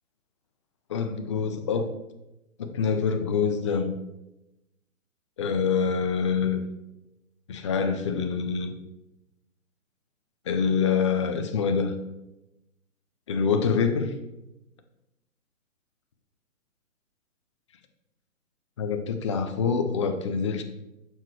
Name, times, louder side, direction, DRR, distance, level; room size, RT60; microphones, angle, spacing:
voice 1, 0.9-1.9 2.6-3.9 5.4-6.6 7.5-8.8 10.5-12.0 13.3-14.1 18.8-20.6, left 6 dB, 25° left, 0.4 m, -25 dB
7.4 x 6.2 x 4.6 m
figure-of-eight pair, 135°, 40 cm